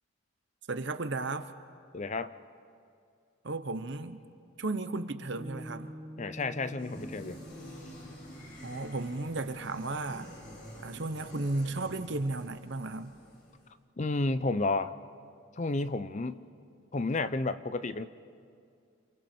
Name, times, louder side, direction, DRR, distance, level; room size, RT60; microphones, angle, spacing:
voice 1, 0.7-1.5 3.4-4.2 4.6-5.9 8.6-10.3 10.8-13.1, right 2 dB, 55° right, 10 dB, 0.9 m, -34 dB
voice 2, 1.9-2.3 6.2-7.4 14.0-14.9 15.6-16.4 16.9-18.1, left 2 dB, 35° left, 13 dB, 0.5 m, -31 dB
Piano, 5.4-12.0, equal, 10° left, 1.5 m, -49 dB
sound 1, 6.8-13.7, equal, 50° left, 5.7 m, -48 dB
29.0 x 27.5 x 4.4 m, 2.4 s
head